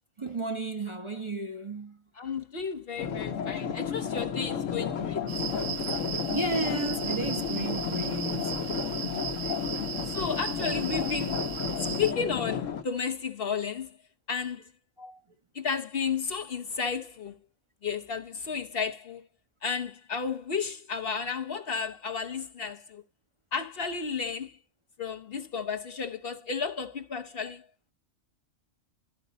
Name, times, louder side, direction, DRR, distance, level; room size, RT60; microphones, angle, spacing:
voice 1, 0.2-2.0 6.3-8.6 15.0-15.2, right 2 dB, 25° right, 0.8 m, -33 dB
voice 2, 2.2-5.2 9.4-9.6 10.0-11.4 12.0-13.9 14.3-14.6 15.5-17.3 17.8-19.2 19.6-23.0 23.5-24.5 25.0-27.6, left 6 dB, 55° left, 0.9 m, -33 dB
sound 1, 3.0-12.8, left 7 dB, 75° left, 1.2 m, -32 dB
sound 2, 5.3-12.1, right 8 dB, 60° right, 0.9 m, -36 dB
12.5 x 5.1 x 4.0 m
omnidirectional pair, 1.3 m